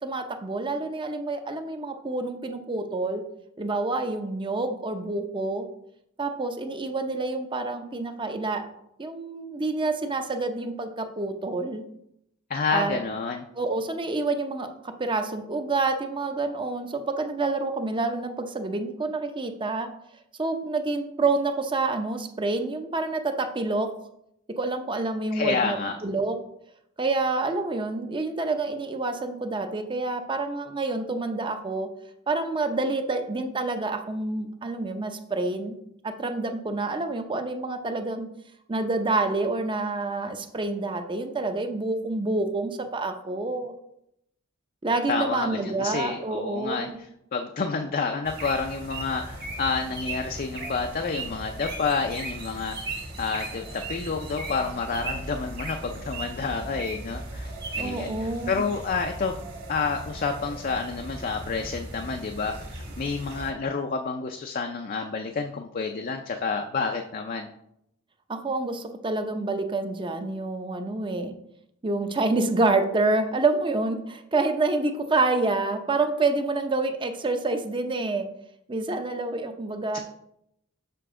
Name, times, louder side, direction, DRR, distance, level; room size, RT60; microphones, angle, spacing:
voice 1, 0.0-3.2 3.6-5.7 6.2-8.6 9.0-11.8 12.7-13.0 13.6-19.9 20.4-23.9 24.6-25.8 26.0-26.4 27.0-31.9 32.3-35.8 36.0-38.3 38.7-43.7 44.8-47.0 57.8-58.7 68.3-71.3 71.8-78.3 78.7-80.0, right 3 dB, 25° right, 7 dB, 0.6 m, -28 dB
voice 2, 12.5-13.4 25.3-26.0 45.1-59.4 59.7-67.5 79.9-80.0, left 4 dB, 40° left, 4 dB, 0.4 m, -29 dB
sound 1, 48.2-63.5, right 2 dB, 50° right, 1.8 m, -37 dB
6.9 x 5.9 x 3.7 m, 0.77 s
head